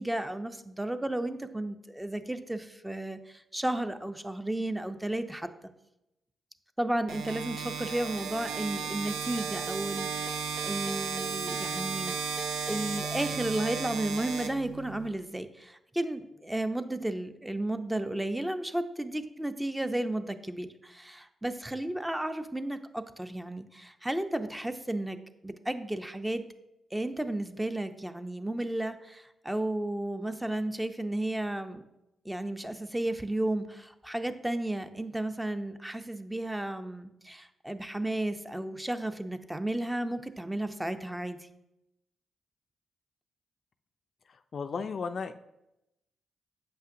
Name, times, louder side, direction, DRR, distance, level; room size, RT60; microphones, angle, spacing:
voice 1, 0.0-5.7 6.8-12.2 12.7-26.4 26.9-31.8 32.2-41.5, right 1 dB, 10° right, 9 dB, 0.5 m, -33 dB
sound 1, 7.1-15.1, right 5 dB, 90° right, 0.5 m, -34 dB
voice 2, 44.5-45.3, left 5 dB, 60° left, 10 dB, 0.3 m, -34 dB
7.4 x 5.5 x 2.6 m, 0.89 s
supercardioid pair, 60°, 0 cm